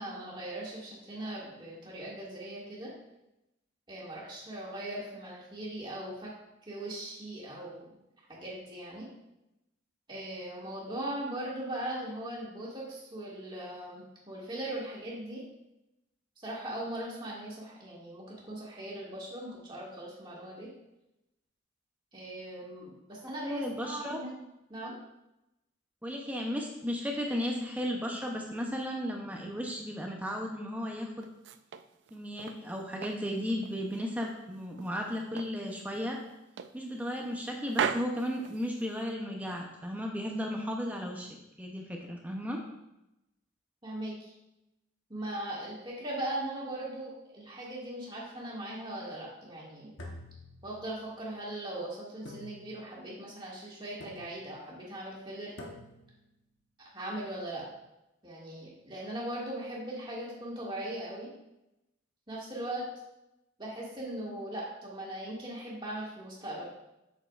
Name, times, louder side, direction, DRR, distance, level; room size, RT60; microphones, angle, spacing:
voice 1, 0.0-2.9 3.9-6.3 6.7-7.9 8.3-9.1 10.1-15.4 16.4-20.7 22.1-24.3 24.7-25.0 43.8-44.3 45.1-49.9 50.6-55.5 56.9-57.6 58.2-61.3 62.3-62.8 63.6-66.7, right 1 dB, 25° right, -6 dB, 2.1 m, -39 dB
voice 2, 23.4-24.2 26.0-31.3 32.1-36.2 36.7-41.3 41.6-42.6, equal, 10° right, 0 dB, 0.7 m, -35 dB
sound 1, 31.2-32.6 33.0-34.4 34.8-35.6 35.9-36.1 36.6-37.4 37.7-39.1, right 7 dB, 60° right, 0.3 m, -37 dB
sound 2, 50.0-51.2 52.2-53.0 54.0-54.6 55.6-56.2, left 1 dB, 75° left, 1.2 m, -48 dB
8.3 x 6.5 x 2.5 m, 0.89 s
head